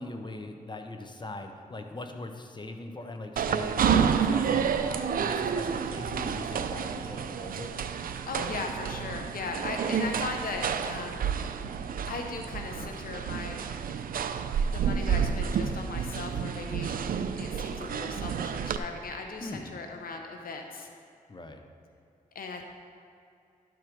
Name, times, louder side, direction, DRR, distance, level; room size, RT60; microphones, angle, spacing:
voice 1, 0.0-7.7 19.4-19.8 21.3-21.6, left 2 dB, 30° left, 5 dB, 0.9 m, -41 dB
sound 1, 3.4-18.8, right 7 dB, 80° right, 0.4 m, -30 dB
voice 2, 8.3-11.5 12.1-13.7 14.7-16.9 17.4-20.9 22.3-22.6, left 4 dB, 80° left, 3 dB, 0.7 m, -38 dB
12.0 x 4.6 x 5.1 m, 2.5 s
cardioid pair, 60°, 15 cm